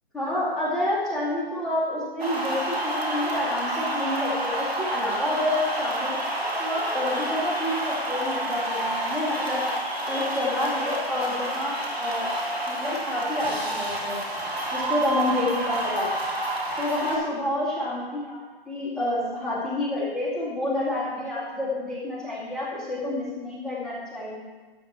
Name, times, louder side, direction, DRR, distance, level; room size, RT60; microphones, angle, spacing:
voice 1, 0.1-6.2 6.6-9.6 10.1-12.3 12.7-14.2 14.7-16.2 16.8-18.4 18.7-24.4, left 1 dB, ahead, -10 dB, 2.3 m, -28 dB
sound 1, 2.2-17.2, right 1 dB, 90° right, 2.7 m, -29 dB
12.5 x 8.6 x 4.3 m, 1.3 s
figure-of-eight pair, 130°, 30 cm